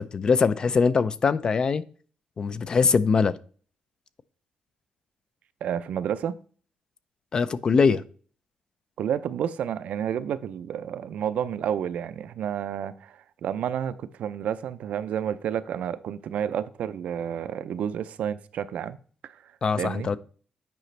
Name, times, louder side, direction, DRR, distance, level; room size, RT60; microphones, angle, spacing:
voice 1, 0.0-1.8 2.4-3.3 7.3-8.0 19.6-20.2, left 5 dB, 35° left, 0.4 m, -22 dB
voice 2, 5.6-6.3 9.0-19.0 19.2-19.5 19.8-20.1, right 9 dB, 70° right, 0.4 m, -30 dB
9.1 x 5.0 x 3.2 m
cardioid pair, 155°, 2 cm